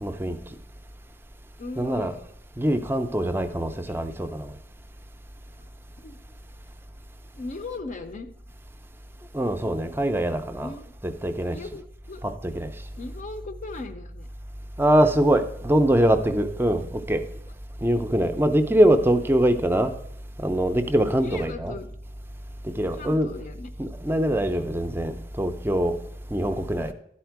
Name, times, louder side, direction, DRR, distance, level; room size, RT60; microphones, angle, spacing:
voice 1, 0.0-0.4 1.8-2.1 2.6-4.6 9.3-10.7 11.0-11.6 12.2-12.7 14.8-17.3 17.8-19.9 20.4-21.8 22.6-23.4 23.8-26.0 26.3-26.9, right 1 dB, 15° right, 0.4 m, -23 dB
voice 2, 1.6-2.2 3.9-4.0 5.6-5.7 6.0-6.2 7.3-8.3 9.6-9.7 10.6-10.8 11.5-11.8 12.1-12.2 13.0-14.3 21.2-21.9 22.9-23.7 26.8-26.9, left 3 dB, 45° left, 0.4 m, -38 dB
11.0 x 4.3 x 4.6 m
head